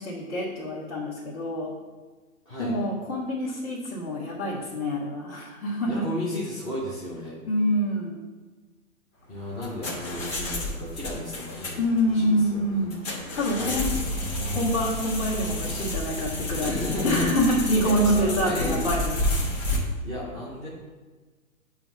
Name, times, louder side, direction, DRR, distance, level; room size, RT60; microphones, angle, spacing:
voice 1, 0.0-1.7 2.6-6.0 7.5-8.2 11.8-13.0 13.3-13.9 14.5-16.7 17.0-19.1, equal, 50° left, -9 dB, 1.6 m, -26 dB
voice 2, 2.5-2.8 5.9-7.4 9.3-11.8 12.1-12.9 13.6-14.7 16.5-17.3 17.8-18.9 20.0-20.7, left 1 dB, 10° left, -8 dB, 0.5 m, -33 dB
sound 1, 9.3-19.8, left 1 dB, 25° left, 1.1 m, -30 dB
7.4 x 2.6 x 5.5 m, 1.3 s
hypercardioid pair, 140°, 43 cm